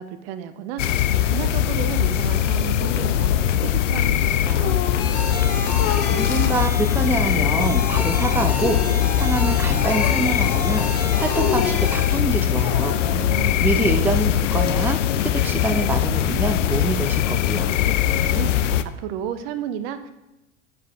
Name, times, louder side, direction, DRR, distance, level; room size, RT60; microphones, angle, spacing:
voice 1, 0.0-4.8 13.1-13.6 18.3-20.1, right 9 dB, 50° right, 10 dB, 0.7 m, -33 dB
sound 1, 0.8-18.8, left 11 dB, 75° left, 0.5 m, -21 dB
sound 2, 4.5-5.1 5.8-6.2 7.0-7.8 8.6-9.0 9.8-10.2 11.3-11.9 12.6-13.2 13.9-14.7, left 7 dB, 45° left, 1.0 m, -30 dB
sound 3, 5.0-12.2, left 3 dB, 30° left, 2.7 m, -31 dB
voice 2, 6.1-8.8 9.1-13.0 13.6-17.7, right 3 dB, 5° right, 5 dB, 0.6 m, -25 dB
8.2 x 6.9 x 3.4 m, 0.95 s
figure-of-eight pair, 80°, 38 cm